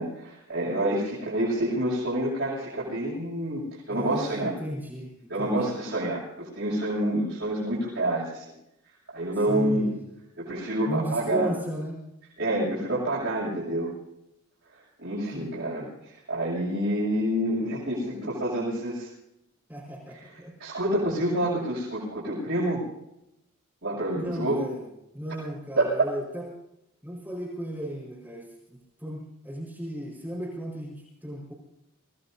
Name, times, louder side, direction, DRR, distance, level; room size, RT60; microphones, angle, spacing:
voice 1, 0.0-3.6 3.9-4.5 5.3-8.4 9.1-9.9 10.4-11.5 12.4-13.9 15.0-15.9 16.3-19.1 20.6-22.8 23.8-24.7 25.8-25.9, right 1 dB, 60° right, -8 dB, 7.1 m, -27 dB
voice 2, 3.9-5.7 9.5-10.0 10.9-12.0 15.3-15.6 19.7-20.5 24.1-24.9 25.1-26.5 27.0-31.5, right 1 dB, 10° right, -4 dB, 5.0 m, -35 dB
25.5 x 18.5 x 2.8 m, 0.85 s
head